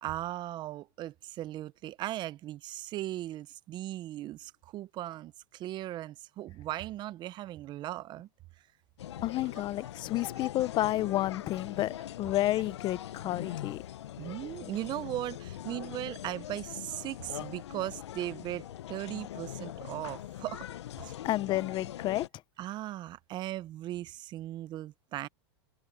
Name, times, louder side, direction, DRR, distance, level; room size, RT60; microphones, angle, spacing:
voice 1, 0.0-8.3 9.6-9.7 14.2-20.7 21.0-21.1 22.6-25.3, right 14 dB, 30° right, 0.7 m, -38 dB
sound 1, 9.0-22.3, left 12 dB, 80° left, 0.9 m, -42 dB
voice 2, 9.2-13.8 21.2-22.3, left 15 dB, 30° left, 0.7 m, -30 dB
hypercardioid pair, 125°, 14 cm